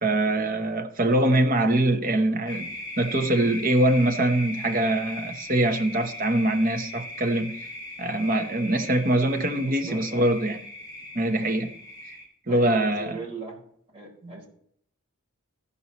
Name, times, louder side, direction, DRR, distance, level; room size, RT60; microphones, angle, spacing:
voice 1, 0.0-2.7 3.0-7.6 8.0-10.6 11.1-11.7 12.1-12.2 12.5-13.2 14.2-14.4, right 1 dB, 40° right, 0.9 m, -23 dB
sound 1, 2.5-12.3, left 1 dB, 20° left, 4.1 m, -39 dB
voice 2, 9.6-10.3 12.5-13.6 13.9-14.5, right 3 dB, 25° right, 4.5 m, -39 dB
15.0 x 5.5 x 4.2 m
head